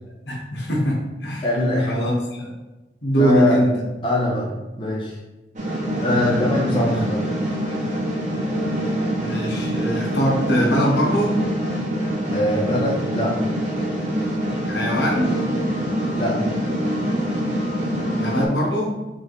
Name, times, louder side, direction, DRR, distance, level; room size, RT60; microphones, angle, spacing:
voice 1, 0.3-1.5 1.9-2.5 3.0-3.7 6.0-6.5 6.9-7.0 9.2-11.4 14.7-15.4 18.2-19.0, equal, 85° left, -2 dB, 1.2 m, -22 dB
voice 2, 1.4-2.0 3.2-3.6 4.0-4.5 4.8-5.2 6.0-7.2 12.3-13.3 16.1-16.4, left 1 dB, 30° left, -3 dB, 0.7 m, -22 dB
sound 1, 5.6-18.5, equal, 45° right, 0.9 m, -25 dB
3.7 x 3.3 x 4.0 m, 1.1 s
head